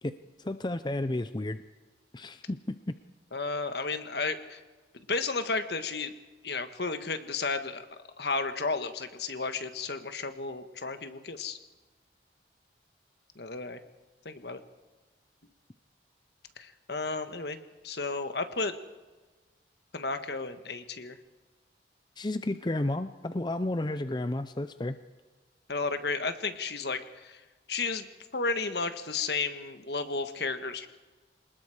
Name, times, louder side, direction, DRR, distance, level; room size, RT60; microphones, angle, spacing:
voice 1, 0.0-1.6 2.1-2.9 22.2-25.0, left 1 dB, 25° left, 11 dB, 0.5 m, -32 dB
voice 2, 3.3-4.6 5.1-6.1 6.4-7.8 8.2-11.6 13.4-13.8 14.2-14.6 16.6-17.6 17.8-18.7 19.9-21.2 25.7-27.4 27.7-28.1 28.3-30.9, left 4 dB, 65° left, 9 dB, 1.4 m, -33 dB
26.0 x 20.0 x 5.0 m, 1.3 s
head